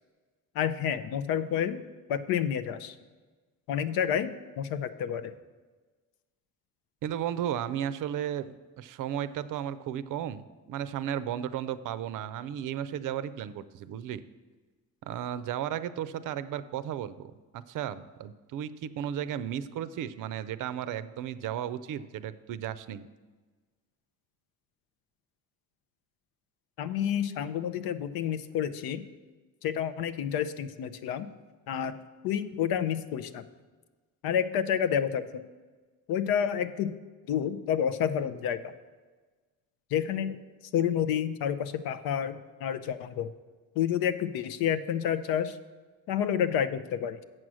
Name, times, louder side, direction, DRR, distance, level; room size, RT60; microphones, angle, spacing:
voice 1, 0.5-1.8 2.1-2.9 3.7-5.3 26.8-29.0 29.6-31.3 31.7-33.4 34.2-35.4 36.1-36.9 37.3-38.7 39.9-40.4 40.7-43.3 43.8-45.6 46.1-47.2, left 9 dB, 80° left, 12 dB, 0.6 m, -29 dB
voice 2, 7.0-14.2 15.0-23.1, right 10 dB, 60° right, 14 dB, 0.5 m, -34 dB
7.6 x 6.2 x 6.2 m, 1.3 s
cardioid pair, 100°, 35 cm